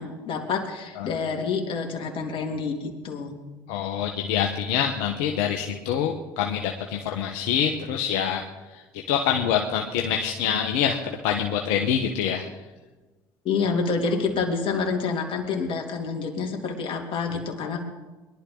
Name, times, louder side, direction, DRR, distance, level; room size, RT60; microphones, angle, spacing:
voice 1, 0.0-3.3 13.4-17.8, left 5 dB, 50° left, 2 dB, 3.0 m, -28 dB
voice 2, 3.7-8.4 8.7-8.8 9.1-12.5, left 8 dB, 75° left, 3 dB, 1.2 m, -25 dB
21.5 x 11.5 x 3.9 m, 1.2 s
hypercardioid pair, 65°, 11 cm